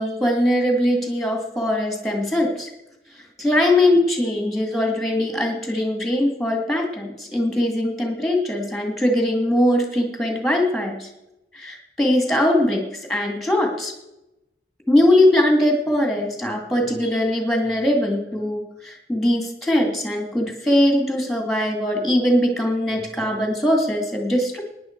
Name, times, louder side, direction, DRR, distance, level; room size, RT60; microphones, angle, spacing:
voice 1, 0.0-2.7 3.4-11.1 11.5-12.8 13.1-13.9 14.9-24.6, left 1 dB, ahead, 3 dB, 2.2 m, -21 dB
17.0 x 10.0 x 4.6 m, 0.91 s
head